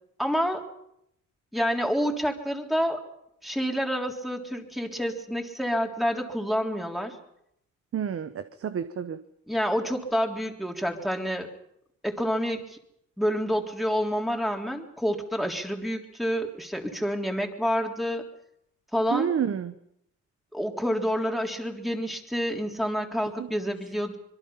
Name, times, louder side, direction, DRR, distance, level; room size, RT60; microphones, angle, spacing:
voice 1, 0.2-0.6 1.5-3.0 3.4-7.2 9.5-11.5 12.0-12.8 13.2-18.2 18.9-19.3 20.5-24.2, equal, ahead, 2 dB, 3.7 m, -28 dB
voice 2, 7.9-9.2 19.1-19.7 23.4-23.7, right 8 dB, 50° right, 11 dB, 1.1 m, -30 dB
25.5 x 22.5 x 5.8 m, 0.77 s
cardioid pair, 90°, 30 cm